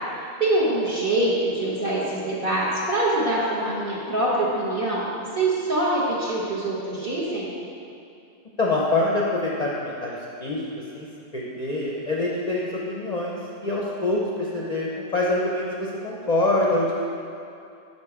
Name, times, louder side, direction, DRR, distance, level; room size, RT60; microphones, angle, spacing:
voice 1, 0.4-7.5, right 1 dB, 45° right, -7 dB, 1.2 m, -24 dB
voice 2, 8.6-10.6 10.9-11.1 11.3-16.9, left 2 dB, 40° left, -5 dB, 0.6 m, -25 dB
6.5 x 5.2 x 4.7 m, 2.6 s
omnidirectional pair, 1.4 m